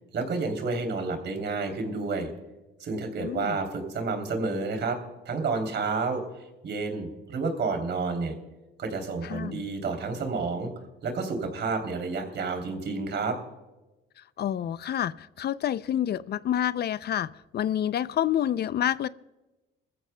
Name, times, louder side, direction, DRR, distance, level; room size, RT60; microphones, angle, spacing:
voice 1, 0.1-2.3 2.8-5.0 5.2-6.2 6.6-8.3 8.8-10.7 11.0-13.4, right 4 dB, 60° right, 5 dB, 3.1 m, -30 dB
voice 2, 3.2-3.6 9.2-9.6 14.4-19.1, left 10 dB, 55° left, 17 dB, 0.5 m, -28 dB
21.0 x 14.5 x 2.2 m, 1.1 s
cardioid pair, 90°, 20 cm